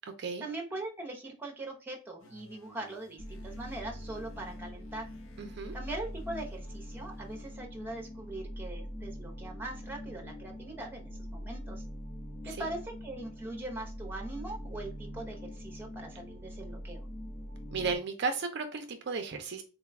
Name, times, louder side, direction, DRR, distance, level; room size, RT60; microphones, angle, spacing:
voice 1, 0.4-5.1 5.7-11.8 12.4-17.1, right 2 dB, 10° right, 1 dB, 0.7 m, -41 dB
sound 1, 2.2-7.6, right 1 dB, 65° left, 0.6 m, -57 dB
sound 2, 3.2-18.0, equal, 40° left, 0.8 m, -43 dB
voice 2, 5.4-5.7 12.4-12.7 17.7-19.6, right 4 dB, 50° right, 6 dB, 0.4 m, -34 dB
3.8 x 2.3 x 3.4 m, 0.36 s
head